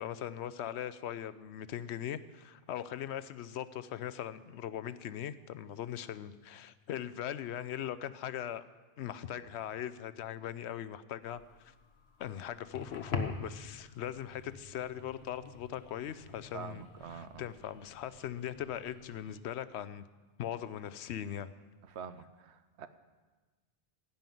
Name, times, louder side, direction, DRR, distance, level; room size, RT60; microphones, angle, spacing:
voice 1, 0.0-8.6 9.0-11.4 12.2-16.9 17.1-20.1 20.4-21.5, left 10 dB, 85° left, 14 dB, 0.9 m, -40 dB
sound 1, 11.2-19.4, left 3 dB, 70° left, 1.3 m, -45 dB
voice 2, 16.5-17.5 21.8-22.9, right 7 dB, 85° right, 11 dB, 1.0 m, -46 dB
16.0 x 5.7 x 9.1 m, 1.3 s
omnidirectional pair, 1.1 m